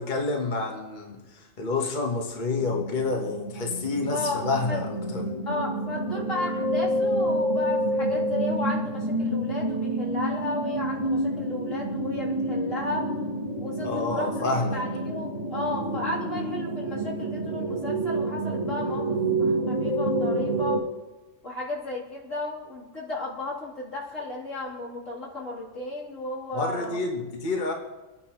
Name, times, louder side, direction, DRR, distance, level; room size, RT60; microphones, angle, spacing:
voice 1, 0.0-5.3 13.8-14.8 26.5-27.7, left 3 dB, 40° left, 1 dB, 1.4 m, -29 dB
sound 1, 2.6-20.8, right 1 dB, 30° right, 1.7 m, -28 dB
voice 2, 4.1-4.8 5.5-13.1 13.6-14.3 14.7-20.8 21.4-27.0, left 2 dB, 80° left, -6 dB, 3.5 m, -34 dB
26.0 x 9.8 x 3.0 m, 1.2 s
omnidirectional pair, 1.3 m